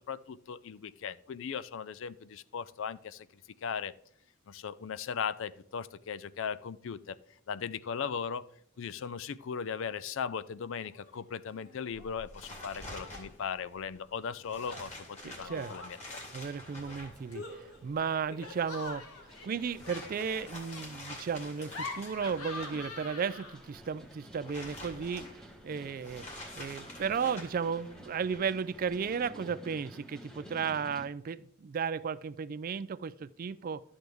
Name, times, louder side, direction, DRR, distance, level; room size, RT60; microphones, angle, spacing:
voice 1, 0.0-3.3 3.6-3.9 4.5-7.2 7.5-8.5 8.8-16.0, left 6 dB, 60° left, 0.4 m, -38 dB
Laughter, 10.8-11.2 11.5-12.1 12.5-13.3 14.6-16.2 16.8-23.8, left 3 dB, 85° left, 1.8 m, -46 dB
sound 1, 11.9-29.2, left 1 dB, 30° left, 2.5 m, -49 dB
sound 2, 14.4-31.1, equal, 5° left, 1.0 m, -54 dB
voice 2, 15.2-15.7 16.3-19.0 19.4-26.3 26.6-33.8, right 6 dB, 40° right, 0.3 m, -34 dB
12.0 x 7.8 x 3.4 m
head